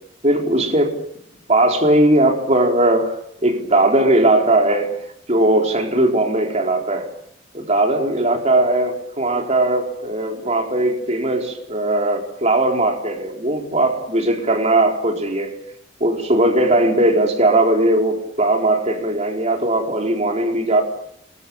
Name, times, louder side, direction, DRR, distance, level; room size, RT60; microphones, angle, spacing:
voice 1, 0.2-0.9 1.5-4.9 5.3-7.1 7.5-15.5 16.0-20.8, right 1 dB, 35° right, 2 dB, 4.3 m, -18 dB
28.5 x 22.0 x 7.3 m, 0.71 s
head